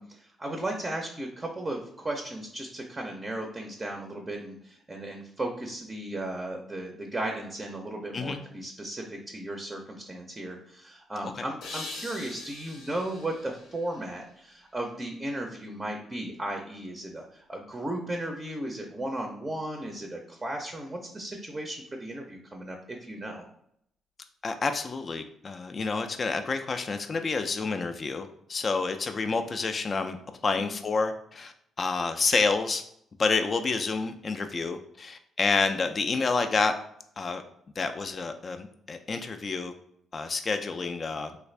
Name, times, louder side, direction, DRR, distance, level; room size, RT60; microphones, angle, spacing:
voice 1, 0.0-23.5, right 1 dB, 20° right, 2 dB, 0.5 m, -35 dB
sound 1, 11.6-14.7, left 3 dB, 80° left, 0.7 m, -43 dB
voice 2, 24.4-30.2 30.4-32.8 33.2-36.7 37.2-37.4 37.8-39.7 40.1-41.3, left 4 dB, 40° left, 7 dB, 0.3 m, -29 dB
3.4 x 2.4 x 3.1 m, 0.71 s
cardioid pair, 90°, 0 cm